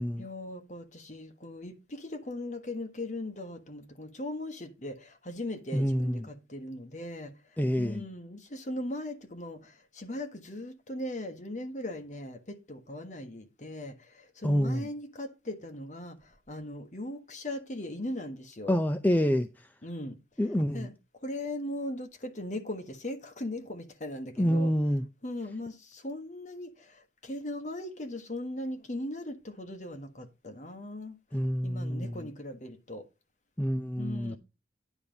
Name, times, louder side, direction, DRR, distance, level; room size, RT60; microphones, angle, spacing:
voice 1, 0.2-7.3 7.8-16.2 16.5-18.8 19.8-20.2 20.7-21.0 21.2-24.7 25.2-31.2 31.6-33.0 34.0-34.4, left 1 dB, 40° left, 1.4 m, -39 dB
voice 2, 5.7-6.3 7.6-8.0 14.4-14.9 18.7-19.7 20.4-20.9 24.4-25.1 31.3-32.3 33.6-34.4, equal, 10° left, 0.5 m, -27 dB
9.8 x 3.9 x 7.1 m
head